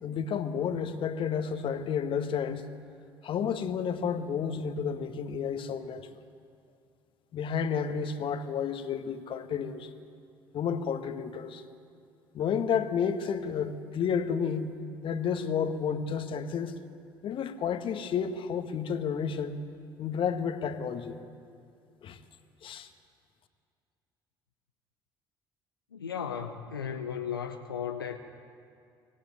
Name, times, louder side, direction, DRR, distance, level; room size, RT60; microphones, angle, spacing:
voice 1, 0.0-2.6 3.2-6.1 7.3-9.9 10.5-11.6 12.3-14.7 15.0-16.7 17.2-19.6 20.0-21.2 22.0-22.2 22.6-22.9, left 7 dB, 45° left, 1.7 m, -31 dB
voice 2, 25.9-28.2, left 7 dB, 80° left, 1.0 m, -35 dB
24.5 x 19.0 x 9.3 m
figure-of-eight pair, 55°, 12 cm